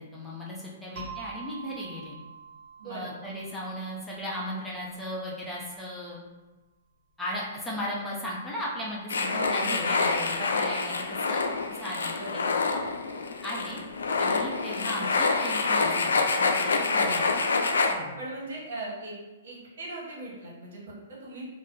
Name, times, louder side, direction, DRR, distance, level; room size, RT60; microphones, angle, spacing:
voice 1, 0.0-2.2 2.8-6.2 7.2-12.8 13.4-13.8 14.2-17.3 17.9-18.2, equal, 5° left, -6 dB, 0.6 m, -37 dB
sound 1, 1.0-5.4, right 5 dB, 45° right, 1.3 m, -46 dB
voice 2, 2.8-3.1 9.3-10.4 12.1-12.4 16.9-17.4 18.2-19.2 19.4-21.4, right 1 dB, 70° right, -4 dB, 1.0 m, -39 dB
sound 2, 9.1-17.9, left 4 dB, 85° left, 0.3 m, -27 dB
2.4 x 2.0 x 3.6 m, 1.1 s
hypercardioid pair, 130°, 0 cm